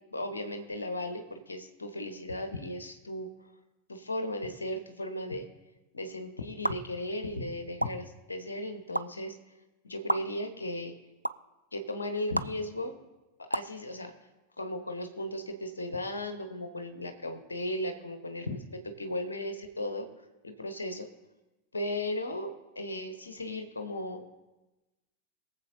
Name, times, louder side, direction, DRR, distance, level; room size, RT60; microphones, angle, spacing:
voice 1, 0.1-3.3 3.9-5.4 5.9-9.4 9.8-10.9 11.7-13.0 13.5-14.1 14.6-20.1 20.4-21.1 21.7-24.3, left 1 dB, 75° left, 6 dB, 1.2 m, -36 dB
sound 1, 6.6-6.7 7.8-7.9 8.9-9.0 10.1-10.2 11.2-11.3 12.3-12.5 13.5-13.7, right 1 dB, 85° right, 0.3 m, -27 dB
22.5 x 7.7 x 2.8 m, 1.1 s
figure-of-eight pair, 90°, 0 cm